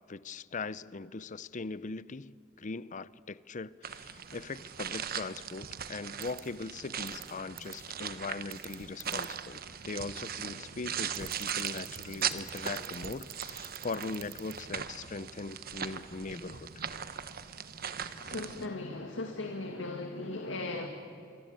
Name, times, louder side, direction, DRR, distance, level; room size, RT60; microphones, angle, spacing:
voice 1, 0.1-16.7, left 3 dB, 40° left, 0.6 m, -40 dB
sound 1, 3.8-18.7, right 8 dB, 50° right, 1.2 m, -39 dB
sound 2, 6.2-6.4 7.1-7.2 7.6-7.8 8.5-9.3 11.1-14.5, right 14 dB, 80° right, 3.5 m, -45 dB
voice 2, 18.2-20.9, left 2 dB, 75° left, 2.1 m, -37 dB
27.0 x 24.0 x 8.9 m
head